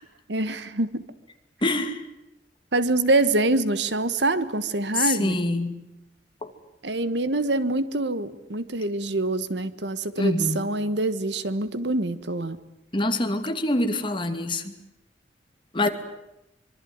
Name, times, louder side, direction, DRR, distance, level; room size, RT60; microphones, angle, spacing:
voice 1, 0.3-1.0 2.7-5.4 6.8-12.6 15.8-15.9, right 2 dB, 70° right, 14 dB, 1.5 m, -25 dB
voice 2, 1.6-2.0 5.0-5.7 10.2-10.6 12.9-14.6 15.7-15.9, left 2 dB, 30° left, 6 dB, 2.5 m, -25 dB
25.0 x 24.0 x 9.6 m, 0.89 s
head